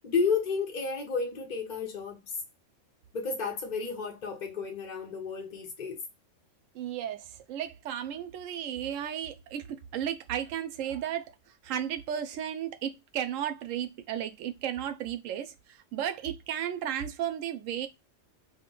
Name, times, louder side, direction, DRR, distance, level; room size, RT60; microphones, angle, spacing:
voice 1, 0.0-2.4 3.1-6.0, left 5 dB, 45° left, 0.7 m, -32 dB
voice 2, 6.7-9.7 9.9-11.3 11.6-15.5 15.9-17.9, right 10 dB, 90° right, 1.0 m, -34 dB
2.8 x 2.2 x 3.7 m
omnidirectional pair, 1.3 m